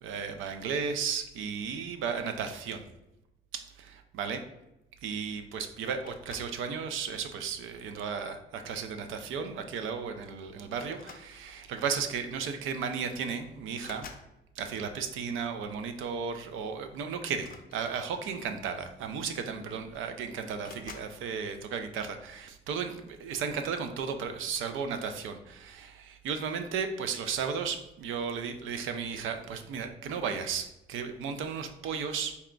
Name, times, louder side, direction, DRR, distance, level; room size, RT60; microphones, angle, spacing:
voice 1, 0.0-2.8 3.5-4.4 5.0-14.1 14.6-32.4, right 6 dB, 85° right, 7 dB, 0.5 m, -34 dB
sound 1, 6.1-6.7 7.6-7.9 9.4-9.5 9.8-10.0 10.9-11.8 12.8-12.9 13.2-14.4 17.3-18.4 19.3-19.4 19.6-20.1 20.6-21.2, left 5 dB, 50° left, 0.6 m, -50 dB
4.1 x 2.3 x 3.7 m, 0.92 s
cardioid pair, 90°, 20 cm